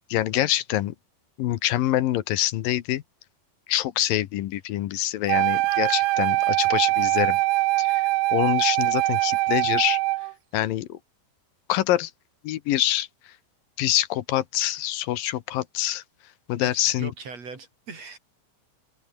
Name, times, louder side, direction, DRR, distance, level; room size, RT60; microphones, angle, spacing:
voice 1, 0.1-0.9 1.4-3.0 3.7-7.4 7.8-8.0 8.3-10.0 10.5-11.0 11.7-12.1 12.4-13.1 13.8-16.0 16.5-17.1, left 14 dB, 80° left, 2.8 m, -25 dB
Wind instrument woodwind instrument, 5.3-10.3, right 20 dB, 85° right, 2.3 m, -23 dB
voice 2, 16.6-18.2, right 4 dB, 45° right, 5.3 m, -40 dB
open air
omnidirectional pair, 4.0 m